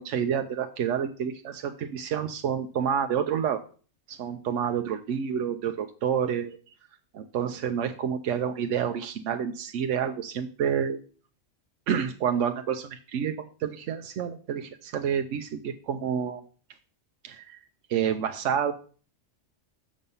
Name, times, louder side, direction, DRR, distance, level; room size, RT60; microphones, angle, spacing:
voice 1, 0.0-3.6 4.1-6.6 7.1-11.0 11.9-16.4 17.2-17.6 17.9-18.7, right 8 dB, 75° right, 7 dB, 1.0 m, -29 dB
7.1 x 6.3 x 5.4 m, 0.41 s
omnidirectional pair, 1.3 m